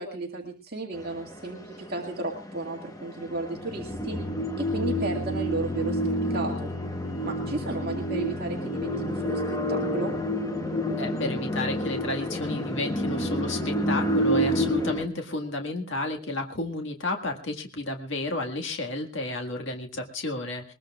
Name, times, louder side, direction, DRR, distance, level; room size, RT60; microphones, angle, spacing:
voice 1, 0.0-4.2 4.6-6.7 7.2-10.2, right 2 dB, 50° right, -1 dB, 2.1 m, -34 dB
sound 1, 2.2-15.1, equal, 15° left, 1.2 m, -28 dB
voice 2, 11.0-20.7, left 2 dB, 60° left, 3 dB, 1.9 m, -32 dB
21.0 x 21.0 x 2.4 m, 0.32 s
head